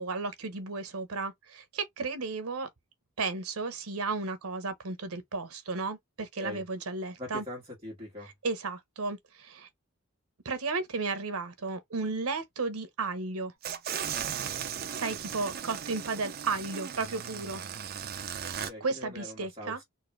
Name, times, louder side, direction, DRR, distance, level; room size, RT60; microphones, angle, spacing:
voice 1, 0.0-2.7 3.2-7.4 8.4-9.7 10.4-13.5 14.5-17.6 18.8-19.8, right 4 dB, 80° right, 0.9 m, -34 dB
voice 2, 7.2-8.3 18.4-19.8, left 1 dB, 25° right, 1.5 m, -42 dB
sound 1, 13.6-18.7, right 8 dB, 45° right, 0.5 m, -37 dB
3.8 x 2.5 x 3.2 m
head